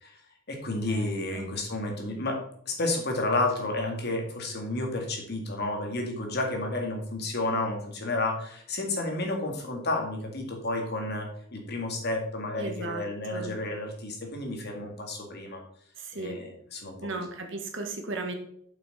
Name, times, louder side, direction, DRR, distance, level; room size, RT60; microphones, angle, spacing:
voice 1, 0.5-2.4 2.7-15.6 16.1-17.3, left 2 dB, 55° left, 2 dB, 2.0 m, -31 dB
voice 2, 12.6-13.0 13.3-13.5 16.0-16.4 17.0-18.3, right 3 dB, 65° right, 4 dB, 1.4 m, -35 dB
7.8 x 5.9 x 4.2 m, 0.67 s
head